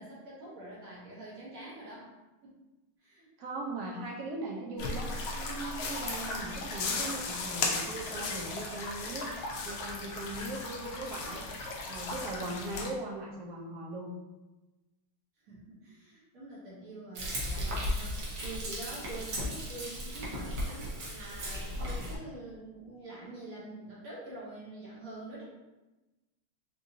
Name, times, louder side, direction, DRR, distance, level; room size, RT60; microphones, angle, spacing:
voice 1, 0.0-2.1 2.4-2.6 3.0-3.3 15.4-25.4, right 2 dB, 45° right, -8 dB, 1.5 m, -45 dB
voice 2, 3.4-9.3 9.6-11.5 11.9-14.1, right 2 dB, 80° right, -2 dB, 0.8 m, -39 dB
sound 1, 4.8-12.9, left 3 dB, 75° left, 0.8 m, -36 dB
Frying (food), 17.2-22.2, equal, 65° right, 1.4 m, -35 dB
4.0 x 2.6 x 2.6 m, 1.1 s
omnidirectional pair, 2.2 m